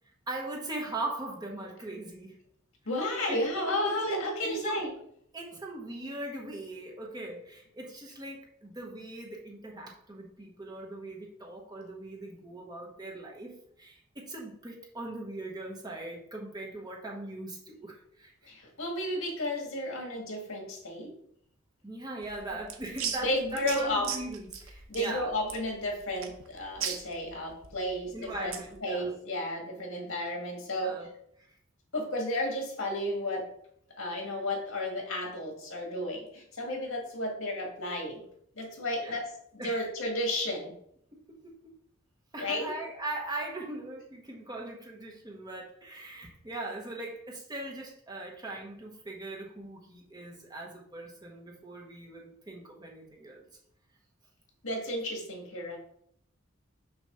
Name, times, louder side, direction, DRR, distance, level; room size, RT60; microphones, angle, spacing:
voice 1, 0.3-2.4 3.2-4.8 5.3-18.5 21.8-25.3 28.1-29.1 30.7-31.1 39.0-39.2 39.6-39.9 41.1-41.5 42.3-53.4, right 2 dB, 20° right, -1 dB, 1.0 m, -40 dB
voice 2, 2.8-4.9 18.5-21.1 23.2-24.1 24.9-31.0 31.9-33.5 34.0-38.3 38.5-39.3 39.6-40.7 42.4-42.7 54.6-55.8, left 1 dB, 80° left, 1 dB, 1.8 m, -32 dB
sound 1, 22.2-28.7, right 7 dB, 80° right, 0.8 m, -39 dB
6.2 x 3.1 x 5.6 m, 0.69 s
head